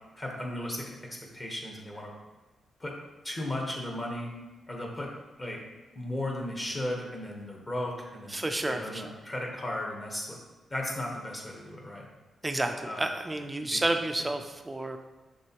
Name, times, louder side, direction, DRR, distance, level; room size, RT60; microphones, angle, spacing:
voice 1, 0.2-2.1 2.8-2.9 3.2-4.3 4.7-5.1 5.4-5.6 5.9-10.4 10.7-12.1 12.8-13.1 13.7-13.8, left 1 dB, 25° left, -1 dB, 1.0 m, -35 dB
voice 2, 8.3-9.1 12.4-15.0, right 1 dB, 10° right, 6 dB, 0.4 m, -30 dB
7.5 x 6.0 x 2.9 m, 1.1 s
wide cardioid pair, 180°, 0 cm